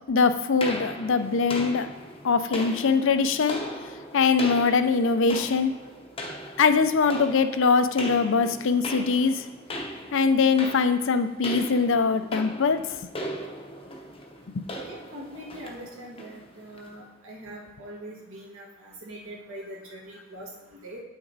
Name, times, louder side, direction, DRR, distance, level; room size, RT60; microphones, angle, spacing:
voice 1, 0.1-1.9 2.2-3.6 4.1-5.7 6.6-9.5 10.1-12.8 14.5-14.6, left 5 dB, 60° left, 10 dB, 0.5 m, -22 dB
Reverby stairs, 0.6-17.0, left 1 dB, 25° left, 0.7 m, -38 dB
voice 2, 14.8-21.0, right 1 dB, 80° right, -3 dB, 1.8 m, -42 dB
8.9 x 5.9 x 4.0 m, 0.99 s
head